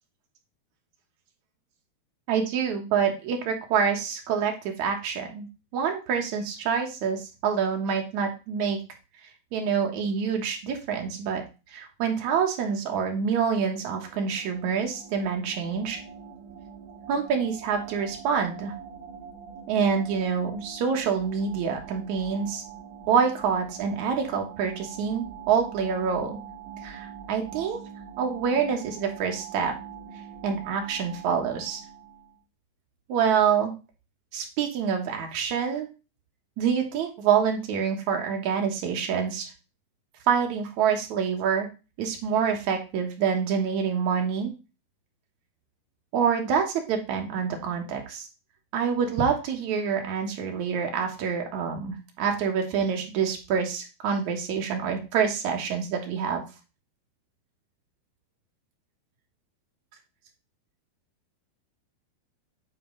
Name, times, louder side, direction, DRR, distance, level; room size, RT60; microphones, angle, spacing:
voice 1, 2.3-5.5 5.7-8.8 9.5-11.4 11.7-16.0 17.1-18.7 19.7-22.6 23.1-26.4 26.8-27.8 28.2-29.7 30.4-31.8 33.1-33.7 34.3-35.9 36.6-39.5 40.3-41.7 42.0-44.5 46.1-48.3 48.7-56.4, right 6 dB, 60° right, 3 dB, 2.1 m, -26 dB
sound 1, 13.5-32.4, right 7 dB, 80° right, 2.8 m, -44 dB
9.1 x 4.4 x 3.8 m, 0.30 s
omnidirectional pair, 4.7 m